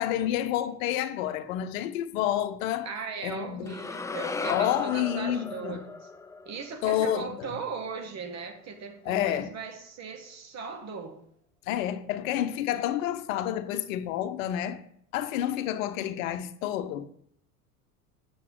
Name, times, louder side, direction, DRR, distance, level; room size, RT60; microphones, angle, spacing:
voice 1, 0.0-2.9 3.2-3.7 4.5-5.8 6.8-7.5 9.0-9.5 11.7-14.8 15.1-17.1, left 11 dB, 60° left, 0.9 m, -29 dB
voice 2, 2.8-6.1 6.4-11.2, right 5 dB, 35° right, 1.5 m, -38 dB
sound 1, 3.7-7.9, left 4 dB, 5° left, 0.4 m, -36 dB
7.6 x 6.8 x 3.8 m
figure-of-eight pair, 75°, 45 cm